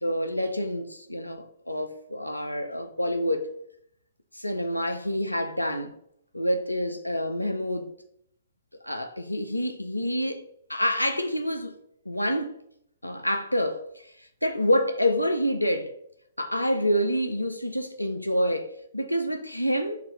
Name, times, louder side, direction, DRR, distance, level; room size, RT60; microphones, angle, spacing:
voice 1, 0.0-3.5 4.3-5.9 6.3-7.9 8.8-10.4 10.7-11.8 12.1-12.6 13.0-14.1 14.4-15.9 16.4-20.0, equal, 90° left, 0.4 m, -27 dB
6.4 x 2.5 x 2.9 m
figure-of-eight pair, 115°, 0 cm